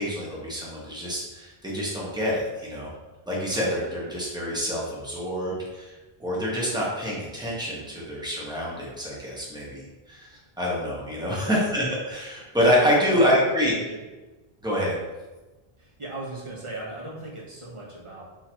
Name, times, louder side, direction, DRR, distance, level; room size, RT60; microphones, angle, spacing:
voice 1, 0.0-2.9 3.3-5.9 6.2-13.7 14.6-15.0, equal, 5° right, -5 dB, 1.1 m, -26 dB
voice 2, 13.1-14.0 15.8-18.2, right 2 dB, 30° right, -4 dB, 1.0 m, -38 dB
3.8 x 2.9 x 4.5 m, 1.1 s
omnidirectional pair, 1.0 m